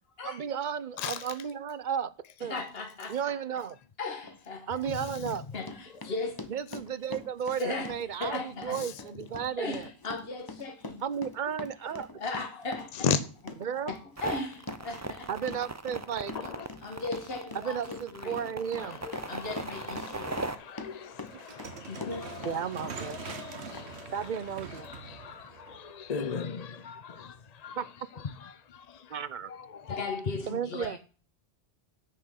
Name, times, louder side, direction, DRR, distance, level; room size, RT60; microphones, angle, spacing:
voice 1, 0.2-2.1 2.4-2.6 3.1-3.8 4.7-5.4 6.5-9.9 11.0-12.1 13.6-13.9 15.3-16.5 17.5-19.0 21.3-21.4 21.8-21.9 22.4-23.2 24.1-24.9 27.8-27.9 29.1-29.5 30.5-31.0, right 8 dB, 50° right, 0.8 m, -34 dB
voice 2, 2.4-3.4 4.0-4.8 5.5-6.5 7.6-7.9 8.2-8.8 9.6-11.0 12.2-13.2 13.9-15.3 16.8-18.4 19.3-20.4 21.9-22.3 29.9-31.0, left 3 dB, 60° left, 1.9 m, -37 dB
Run, 4.2-4.4 4.8-22.6 22.8-23.4 23.7-23.8, left 3 dB, 20° left, 1.0 m, -44 dB
sound 1, 14.2-20.5, right 2 dB, 20° right, 0.6 m, -38 dB
voice 3, 20.0-22.6 23.1-24.1 24.8-27.3 27.6-27.8 28.7-28.8 29.9-30.0, left 6 dB, 45° left, 0.7 m, -36 dB
sound 2, 21.3-26.4, right 6 dB, 75° right, 1.4 m, -44 dB
9.8 x 6.0 x 6.5 m
omnidirectional pair, 1.1 m